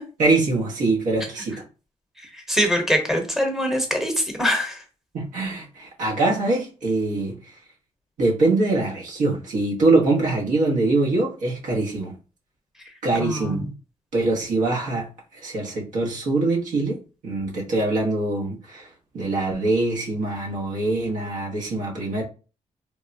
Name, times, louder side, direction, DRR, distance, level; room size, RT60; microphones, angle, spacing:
voice 1, 0.2-1.6 5.1-7.4 8.2-12.2 13.0-13.7 14.1-15.1 15.3-18.9 19.1-22.2, right 2 dB, 85° right, 1.0 m, -23 dB
voice 2, 2.3-4.8 13.2-13.6, equal, 5° right, 0.9 m, -23 dB
3.4 x 2.1 x 2.6 m
cardioid pair, 105°, 13 cm